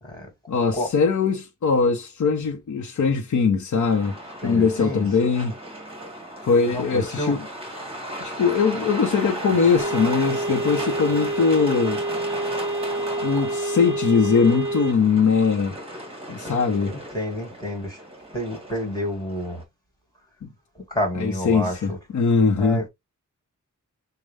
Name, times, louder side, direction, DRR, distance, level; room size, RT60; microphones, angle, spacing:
voice 1, 0.5-4.2 4.4-5.5 6.5-7.4 8.2-12.0 13.2-15.8 16.3-17.0 20.4-20.5 21.2-22.8, left 5 dB, 65° left, 0.8 m, -21 dB
Truck, 3.8-19.6, right 1 dB, 20° right, 1.7 m, -36 dB
voice 2, 4.4-5.1 6.7-7.4 16.4-18.0 18.3-19.6 20.8-22.0 22.6-22.9, left 1 dB, 10° left, 2.1 m, -29 dB
sound 1, 9.8-14.9, right 2 dB, 40° right, 0.6 m, -28 dB
6.4 x 2.2 x 3.3 m
wide cardioid pair, 135°, 31 cm